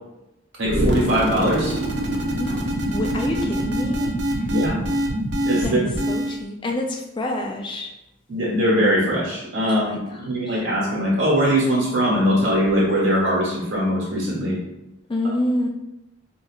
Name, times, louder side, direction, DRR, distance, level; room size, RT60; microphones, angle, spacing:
sound 1, 0.6-6.4, right 1 dB, 60° right, 0.5 m, -24 dB
voice 1, 0.6-1.8 4.5-4.8 5.4-5.8 8.3-14.6, equal, 85° right, -5 dB, 1.4 m, -21 dB
voice 2, 2.4-4.5 5.6-5.8 6.1-7.9 9.6-10.6 15.1-15.7, left 1 dB, 25° left, 2 dB, 0.3 m, -28 dB
4.2 x 2.7 x 2.4 m, 0.94 s
head